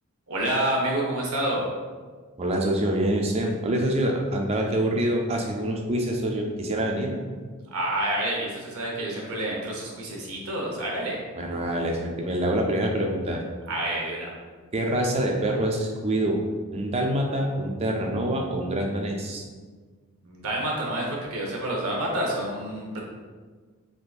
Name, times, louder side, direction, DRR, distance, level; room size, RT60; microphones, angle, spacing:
voice 1, 0.3-1.7 7.7-11.2 13.7-14.3 20.2-23.0, right 1 dB, 75° right, -2 dB, 0.8 m, -28 dB
voice 2, 2.4-7.2 11.3-13.4 14.7-16.4 16.7-19.4, right 1 dB, 30° right, 1 dB, 0.3 m, -26 dB
3.6 x 2.5 x 2.4 m, 1.5 s
head